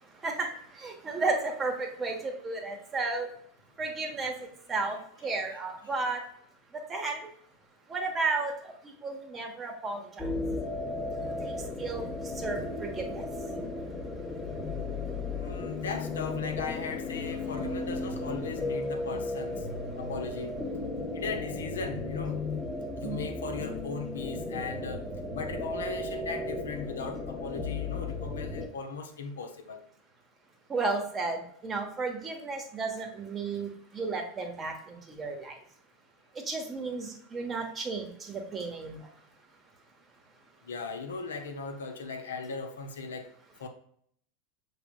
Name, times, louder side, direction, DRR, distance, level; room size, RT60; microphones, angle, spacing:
voice 1, 0.8-3.3 3.8-4.3 4.7-5.0 5.2-6.2 6.9-7.2 7.9-8.7 9.0-10.2 11.2-12.1 12.4-13.3 23.0-23.3 30.7-33.7 33.9-34.7 35.1-35.5 36.5-39.0, right 3 dB, 25° right, 1.1 m, -33 dB
sound 1, 10.2-28.7, left 2 dB, 15° left, 0.9 m, -35 dB
voice 2, 15.3-19.7 20.0-20.5 21.1-22.4 23.0-25.1 25.3-29.8 40.6-43.3 43.6-43.7, left 4 dB, 70° left, 0.7 m, -38 dB
6.9 x 3.4 x 2.3 m
figure-of-eight pair, 85°, 0 cm